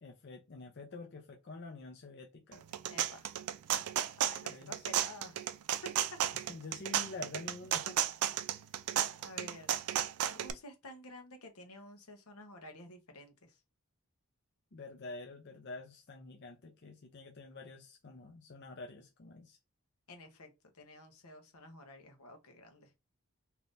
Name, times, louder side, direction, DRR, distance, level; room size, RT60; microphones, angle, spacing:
voice 1, 0.0-2.6 4.4-4.9 6.5-8.0 8.3-8.4 14.7-19.6, left 3 dB, 50° left, 0.6 m, -48 dB
sound 1, 2.5-10.5, right 10 dB, 90° right, 0.4 m, -33 dB
voice 2, 2.9-3.3 4.2-5.4 8.5-8.8 9.2-9.8 10.3-13.6 20.1-22.9, left 1 dB, 80° left, 1.0 m, -52 dB
3.5 x 2.9 x 2.5 m
head